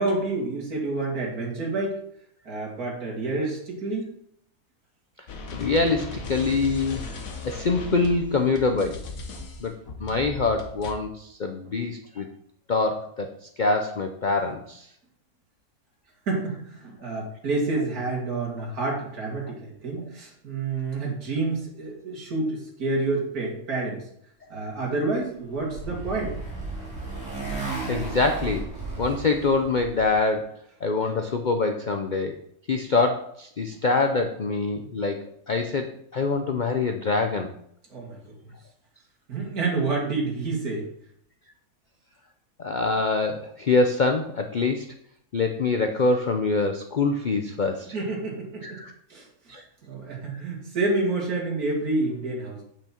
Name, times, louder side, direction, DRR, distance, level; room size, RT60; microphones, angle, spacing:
voice 1, 0.0-2.0 2.5-4.1 11.7-11.8 16.3-24.0 24.5-26.4 37.9-38.2 39.3-40.9 47.9-48.8 49.1-49.3 49.8-52.6, right 3 dB, 70° right, -3 dB, 2.7 m, -28 dB
sound 1, 5.3-10.9, left 2 dB, 60° left, 1.5 m, -37 dB
voice 2, 5.5-7.2 7.4-9.0 9.6-9.7 10.0-12.3 12.7-13.3 13.6-14.9 27.5-28.7 29.0-30.5 30.8-32.3 32.7-37.5 42.6-44.9 45.3-48.0 48.6-48.9 49.5-49.6, left 3 dB, 80° left, 5 dB, 0.4 m, -25 dB
Motorcycle, 25.1-30.2, right 3 dB, 5° right, 3.1 m, -34 dB
8.4 x 6.0 x 4.4 m, 0.70 s
omnidirectional pair, 1.7 m